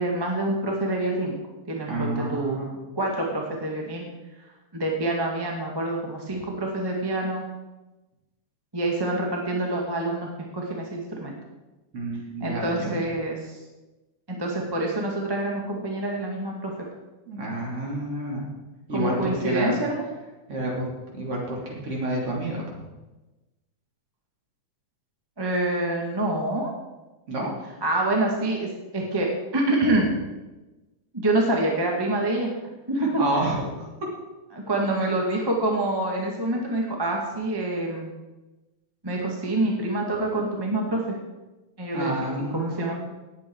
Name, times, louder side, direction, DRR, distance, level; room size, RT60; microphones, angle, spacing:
voice 1, 0.0-1.3 1.7-2.6 2.9-4.1 4.7-7.4 8.7-11.3 12.4-13.6 14.3-16.7 18.9-20.0 25.4-26.7 27.8-30.1 31.1-32.5 32.9-33.2 34.5-38.1 39.0-41.2 41.8-42.1 42.5-42.9, right 2 dB, 10° right, -1 dB, 1.5 m, -26 dB
voice 2, 1.9-2.8 11.9-13.0 17.3-18.5 18.9-19.8 20.5-20.9 21.1-22.6 27.3-27.5 33.0-34.1 35.0-35.1 41.9-42.9, right 1 dB, 50° right, -2 dB, 3.8 m, -29 dB
18.5 x 8.5 x 4.7 m, 1.1 s
omnidirectional pair, 3.4 m